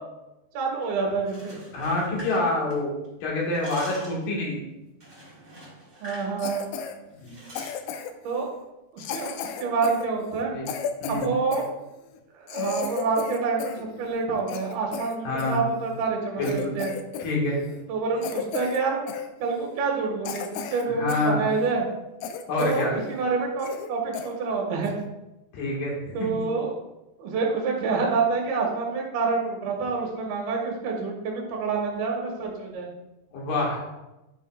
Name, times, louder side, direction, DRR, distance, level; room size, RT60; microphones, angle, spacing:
voice 1, 0.5-1.6 6.0-6.7 8.2-8.5 8.9-9.3 9.6-10.5 11.1-11.7 12.3-16.9 17.9-19.0 19.4-21.9 22.6-25.0 26.1-26.7 27.2-32.9, right 4 dB, 70° right, -1 dB, 3.2 m, -27 dB
sound 1, 1.1-3.1 3.4-4.3 5.0-6.3 6.6-6.8 7.2-7.8, right 1 dB, 35° right, 1.2 m, -44 dB
voice 2, 1.7-2.9 3.2-4.6 7.2-7.4 10.5-10.7 11.0-11.3 15.2-15.6 16.4-16.8 17.2-17.6 20.8-21.4 22.5-22.9 25.5-26.4 33.3-33.8, left 2 dB, 60° left, -3 dB, 3.1 m, -27 dB
Cough, 6.4-7.0 7.6-8.3 9.0-11.7 12.2-12.3 12.5-13.8 14.2-15.6 16.1-16.2 16.4-17.4 17.6-17.8 18.2-18.8 19.1-19.3 19.8-19.9 20.3-21.3 21.7-21.8 22.2-22.9 23.2-23.3 23.6-23.9 24.1-24.3 24.8-25.1, left 6 dB, 80° left, 2.4 m, -34 dB
11.0 x 5.5 x 2.4 m, 0.99 s
omnidirectional pair, 4.6 m